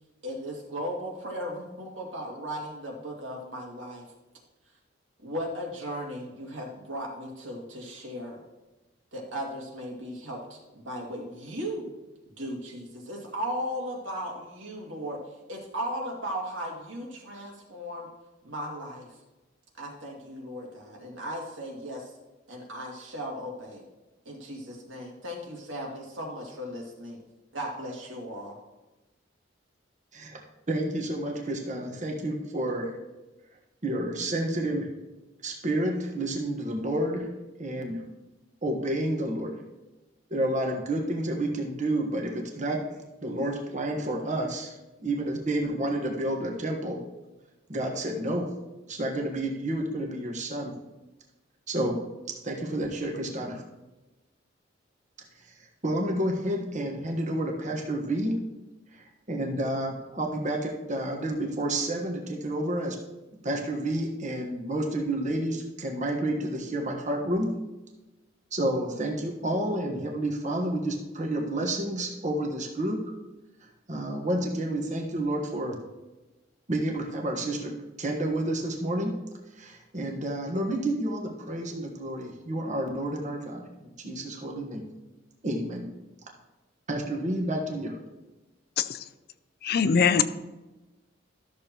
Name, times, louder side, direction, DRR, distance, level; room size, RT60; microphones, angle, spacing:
voice 1, 0.2-4.0 5.2-8.4 9.1-11.9 12.4-15.2 15.5-18.1 18.4-19.1 19.8-22.1 22.5-23.8 24.3-27.2 27.5-28.6, equal, 90° right, -2 dB, 2.3 m, -36 dB
voice 2, 30.1-33.0 33.8-34.9 35.4-37.3 37.6-38.0 38.6-39.6 40.3-42.8 43.2-47.0 47.7-48.5 48.9-50.7 51.7-52.0 52.3-53.6 55.8-58.4 58.9-63.0 63.4-67.5 68.5-73.0 73.9-75.8 76.7-77.7 78.0-79.1 79.5-84.8 85.4-85.9 86.9-88.0, right 1 dB, 40° right, 1 dB, 1.4 m, -30 dB
voice 3, 89.6-90.2, left 6 dB, 55° left, 13 dB, 0.4 m, -22 dB
13.0 x 6.8 x 3.0 m, 1.1 s
head